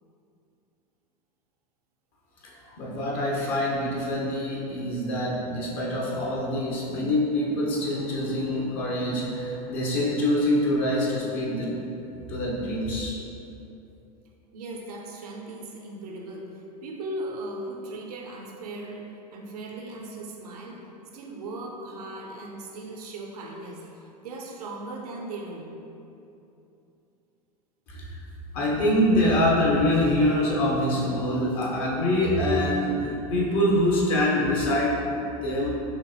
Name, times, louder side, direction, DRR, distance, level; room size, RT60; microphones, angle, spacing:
voice 1, 2.4-11.8 12.3-13.1 27.9-28.1 28.5-35.7, left 1 dB, 55° left, -4 dB, 0.8 m, -25 dB
voice 2, 14.5-16.5 16.8-20.8 21.1-25.7, right 2 dB, 75° right, 1 dB, 0.6 m, -38 dB
5.7 x 2.1 x 2.9 m, 2.8 s
hypercardioid pair, 90°, 20 cm